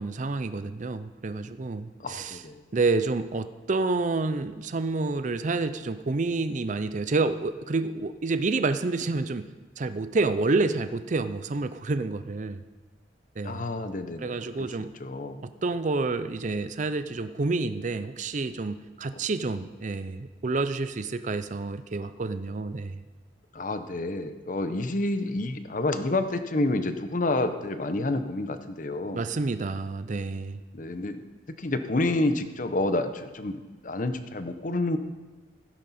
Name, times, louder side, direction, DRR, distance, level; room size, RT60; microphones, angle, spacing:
voice 1, 0.0-2.4 2.7-9.4 9.8-12.6 13.4-13.7 14.2-14.9 15.6-23.0 29.1-30.6, right 3 dB, 40° right, 11 dB, 0.5 m, -28 dB
voice 2, 2.0-2.6 13.4-14.4 15.0-15.4 19.1-19.2 23.5-29.2 30.7-31.2 31.6-33.6 33.8-35.0, left 2 dB, 45° left, 9 dB, 0.8 m, -29 dB
16.0 x 10.5 x 4.3 m, 1.3 s
head